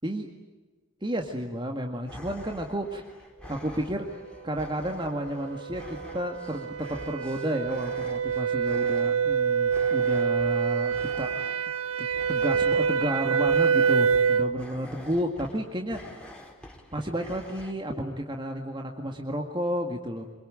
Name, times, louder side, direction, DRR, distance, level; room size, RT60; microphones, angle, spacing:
voice 1, 1.0-3.0 3.5-4.1 4.4-11.3 12.0-16.3 16.9-20.3, equal, 20° right, 3 dB, 1.9 m, -31 dB
sound 1, 2.1-17.7, left 1 dB, 5° left, 4.3 m, -47 dB
sound 2, 4.6-14.6, right 6 dB, 90° right, 1.2 m, -26 dB
26.5 x 23.5 x 8.8 m, 1.3 s
head